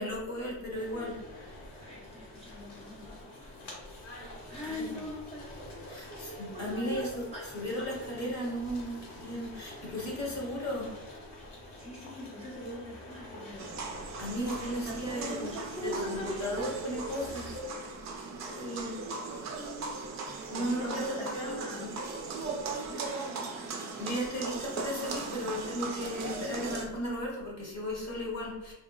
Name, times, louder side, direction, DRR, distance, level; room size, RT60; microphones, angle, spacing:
voice 1, 0.0-1.6 4.6-5.0 5.9-10.9 14.2-15.5 15.8-17.5 18.4-19.2 20.5-21.9 23.1-23.3 24.0-28.7, equal, 40° left, -3 dB, 0.9 m, -36 dB
sound 1, 0.7-17.6, left 2 dB, 65° left, 1.2 m, -47 dB
voice 2, 1.8-3.7 4.5-7.5 7.8-7.9 10.2-10.3 11.7-13.7 14.6-17.2 17.5-17.6 18.4-18.7 19.6-20.0 20.3-21.9 22.8-24.0 26.4-26.5, equal, 15° left, -6 dB, 0.6 m, -42 dB
sound 2, 13.6-26.9, right 4 dB, 40° right, 0.5 m, -38 dB
2.8 x 2.0 x 3.7 m, 1.1 s
cardioid pair, 150°, 45 cm